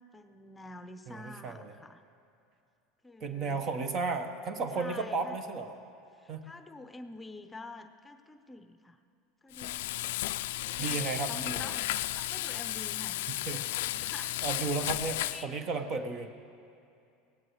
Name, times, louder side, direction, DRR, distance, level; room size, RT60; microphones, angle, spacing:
voice 1, 0.1-2.0 3.0-3.7 4.7-5.4 6.1-9.0 9.4-9.8 10.7-13.2 13.9-14.4 15.2-15.7, left 2 dB, 15° left, 8 dB, 0.7 m, -47 dB
voice 2, 1.1-1.7 3.2-5.7 6.3-6.4 10.8-11.7 13.3-13.9 14.4-16.3, right 4 dB, 45° right, 7 dB, 1.3 m, -34 dB
Frying (food), 9.5-15.4, left 16 dB, 70° left, 0.4 m, -34 dB
23.0 x 17.5 x 3.2 m, 2.5 s
hypercardioid pair, 85°, 0 cm